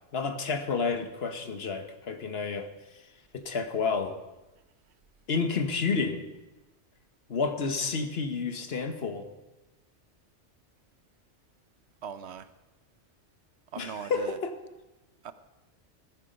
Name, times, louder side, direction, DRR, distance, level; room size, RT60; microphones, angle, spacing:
voice 1, 0.1-2.7 3.3-4.2 5.3-6.2 7.3-9.3 13.8-14.6, left 4 dB, 60° left, 7 dB, 1.3 m, -30 dB
voice 2, 12.0-12.5 13.7-14.4 15.2-15.3, right 7 dB, 70° right, 12 dB, 0.9 m, -39 dB
15.5 x 9.6 x 5.1 m, 1.1 s
omnidirectional pair, 1.2 m